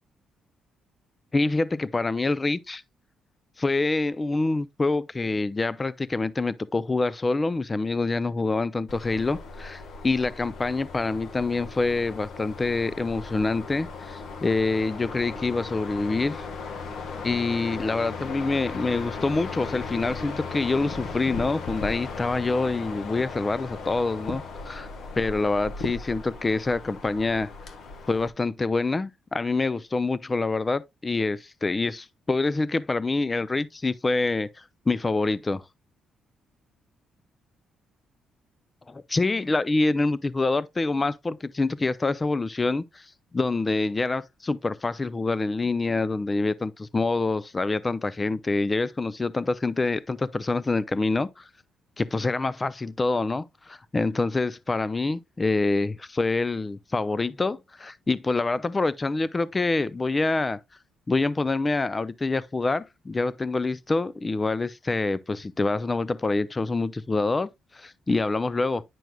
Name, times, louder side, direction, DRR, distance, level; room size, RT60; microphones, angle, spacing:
voice 1, 1.3-2.8 3.6-16.5 17.2-24.9 25.2-27.5 28.1-35.6 38.9-51.5 52.0-60.6 61.1-68.8, left 3 dB, 25° left, 0.4 m, -26 dB
sound 1, 8.9-28.3, left 4 dB, 65° left, 1.3 m, -37 dB
9.1 x 6.1 x 2.2 m
cardioid pair, 90°, 0 cm